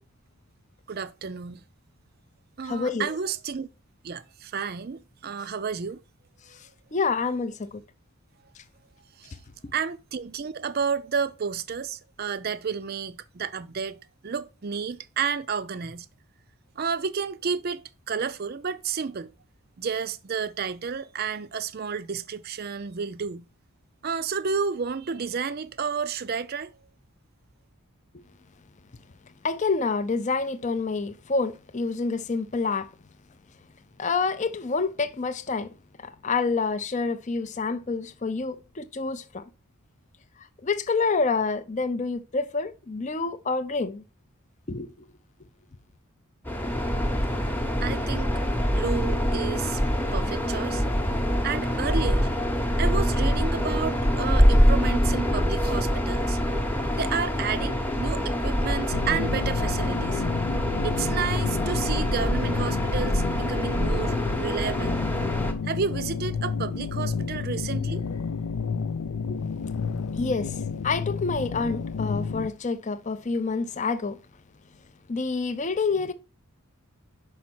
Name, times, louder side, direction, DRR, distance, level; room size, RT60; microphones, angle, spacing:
voice 1, 0.9-1.6 2.6-3.7 4.0-6.0 6.5-6.6 9.2-9.3 9.7-14.0 14.2-16.1 16.8-19.3 19.8-23.5 24.0-26.8 47.8-49.8 50.1-50.8 51.4-52.3 52.8-56.4 56.9-60.2 60.8-65.0 65.6-68.0, right 6 dB, 45° right, 0.4 m, -31 dB
voice 2, 2.6-3.1 6.9-7.8 29.4-32.9 34.0-35.7 36.0-39.4 40.6-44.0 44.7-44.9 69.3-69.4 70.1-70.5 70.8-74.2 75.1-76.1, left 4 dB, 30° left, 0.5 m, -27 dB
sound 1, 46.4-65.5, equal, 10° left, 0.9 m, -25 dB
sound 2, 58.9-72.5, left 5 dB, 85° left, 0.5 m, -31 dB
5.7 x 5.2 x 5.9 m
head